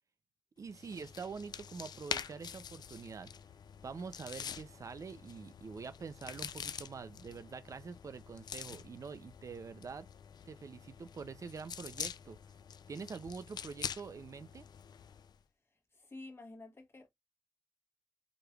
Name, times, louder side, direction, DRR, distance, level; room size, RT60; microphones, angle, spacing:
voice 1, 0.6-3.3 3.8-10.1 10.4-12.4 12.9-14.6, right 5 dB, 50° right, 0.4 m, -45 dB
sound 1, 0.7-15.4, left 8 dB, 85° left, 0.4 m, -46 dB
voice 2, 15.7-17.1, left 2 dB, 35° left, 1.3 m, -51 dB
4.9 x 3.2 x 2.3 m
wide cardioid pair, 115°, 7 cm